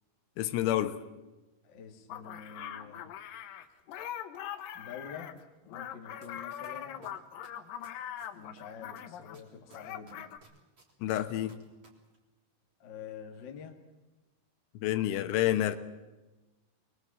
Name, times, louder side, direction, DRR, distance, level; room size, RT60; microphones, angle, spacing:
voice 1, 0.4-1.0 11.0-11.6 14.8-15.8, left 13 dB, 85° left, 9 dB, 3.7 m, -28 dB
voice 2, 1.6-3.1 4.7-5.4 5.7-7.1 8.3-10.3 12.8-13.8, left 7 dB, 35° left, 3 dB, 2.0 m, -47 dB
sound 1, 2.1-9.4 9.7-10.4, left 10 dB, 70° left, 2.3 m, -42 dB
sound 2, 6.2-6.3 6.6-8.6 8.9-11.9 12.1-12.2, right 3 dB, 30° right, 3.7 m, -57 dB
23.5 x 23.0 x 7.6 m, 1.1 s
omnidirectional pair, 5.4 m